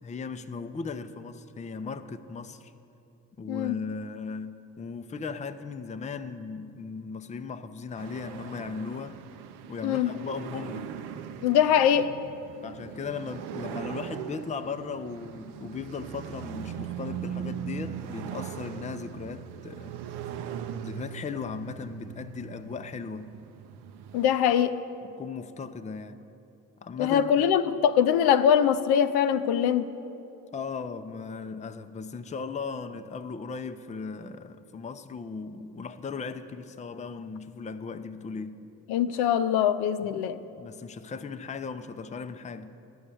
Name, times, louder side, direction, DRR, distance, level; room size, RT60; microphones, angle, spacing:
voice 1, 0.0-2.7 3.4-9.2 9.7-10.9 12.6-20.0 20.8-23.3 25.0-26.2 26.8-27.4 30.5-38.6 40.0-40.3 40.6-42.7, left 5 dB, 15° left, 0.5 m, -37 dB
sound 1, 8.0-24.3, right 9 dB, 65° right, 0.7 m, -40 dB
voice 2, 11.4-12.1 24.1-24.8 27.0-29.9 38.9-40.4, left 9 dB, 65° left, 0.6 m, -23 dB
11.0 x 6.3 x 8.3 m
hypercardioid pair, 50°, 41 cm